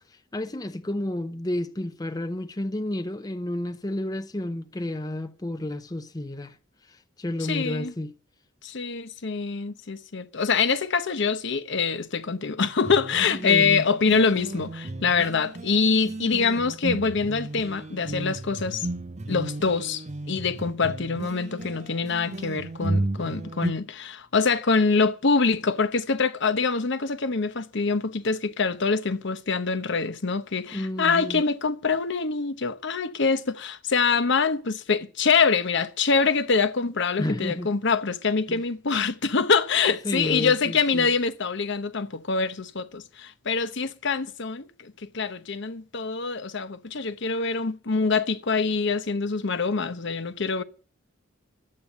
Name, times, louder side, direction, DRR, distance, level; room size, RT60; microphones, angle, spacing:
voice 1, 0.1-6.6 6.8-8.1 13.3-13.9 30.7-31.4 37.2-37.7 38.5-38.6 40.0-41.1, left 1 dB, 20° left, 0.7 m, -31 dB
voice 2, 7.4-7.9 8.6-18.9 19.3-50.6, left 4 dB, 65° left, 1.0 m, -25 dB
sound 1, 12.8-23.7, right 2 dB, 35° right, 0.7 m, -34 dB
11.5 x 8.7 x 9.5 m
head